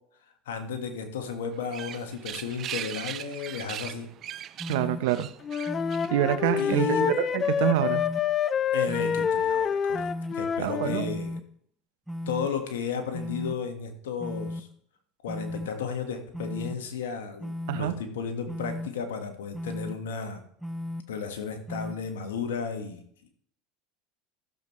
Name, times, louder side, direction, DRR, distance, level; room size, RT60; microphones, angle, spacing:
voice 1, 0.4-4.1 6.6-7.1 8.7-11.4 12.3-14.7 15.2-20.4 21.1-23.0, left 6 dB, 80° left, 6 dB, 1.6 m, -34 dB
sound 1, 1.5-6.9, right 11 dB, 45° right, 0.4 m, -39 dB
sound 2, 4.6-5.0 5.7-6.1 6.7-7.1 7.8-8.2 8.9-9.3 9.9-10.3 11.0-11.4 12.1-12.5 13.1-13.5 14.2-14.6 15.3-15.7 16.3-16.7 17.4-17.8 18.5-18.9 19.5-19.9 20.6-21.0 21.7-21.9, left 1 dB, 5° right, 0.7 m, -35 dB
voice 2, 4.7-5.3 6.1-8.0 10.6-11.1 17.7-17.9, right 12 dB, 70° right, 12 dB, 0.8 m, -26 dB
Wind instrument woodwind instrument, 5.4-11.1, left 7 dB, 35° left, 0.4 m, -27 dB
14.5 x 7.1 x 3.2 m, 0.63 s
hypercardioid pair, 90°, 0 cm